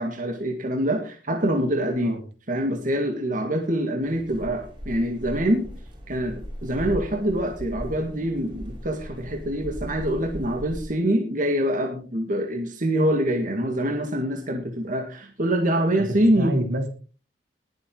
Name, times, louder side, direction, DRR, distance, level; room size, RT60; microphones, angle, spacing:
voice 1, 0.0-2.2 2.5-5.7 6.1-16.5, right 1 dB, 50° right, 2 dB, 2.0 m, -25 dB
sound 1, 4.0-10.8, equal, 30° right, 4.5 m, -38 dB
voice 2, 15.9-16.9, right 1 dB, 70° right, 4 dB, 3.1 m, -28 dB
20.0 x 7.6 x 3.9 m, 0.37 s
head